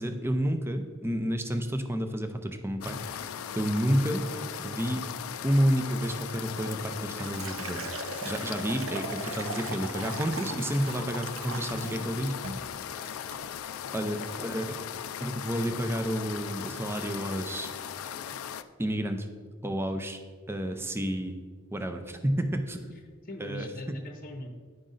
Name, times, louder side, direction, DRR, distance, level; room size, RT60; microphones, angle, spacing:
voice 1, 0.0-4.2 4.6-5.0 5.4-7.9 8.2-12.4 13.9-14.7 15.2-17.7 18.8-19.3 19.6-20.2 20.5-21.4 21.7-22.9 23.4-23.7, equal, 10° right, 7 dB, 0.5 m, -30 dB
sound 1, 2.8-18.6, left 9 dB, 85° left, 0.4 m, -38 dB
Liquid, 6.6-12.1 12.4-12.7 13.1-13.4, right 4 dB, 70° right, 0.7 m, -39 dB
voice 2, 14.0-14.6 23.2-24.5, left 1 dB, 45° left, 5 dB, 0.8 m, -41 dB
9.9 x 5.3 x 3.9 m, 1.5 s
head